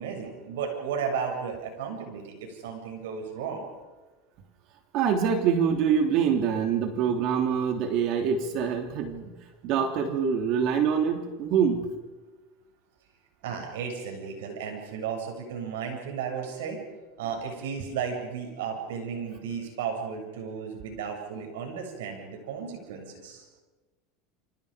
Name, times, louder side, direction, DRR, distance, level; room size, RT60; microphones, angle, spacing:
voice 1, 0.0-3.6 13.4-16.8 17.2-23.4, right 6 dB, 85° right, 3 dB, 7.5 m, -34 dB
voice 2, 4.9-9.4 9.6-11.9, right 7 dB, 55° right, 5 dB, 3.4 m, -25 dB
30.0 x 25.5 x 5.2 m, 1.2 s
supercardioid pair, 125°, 0 cm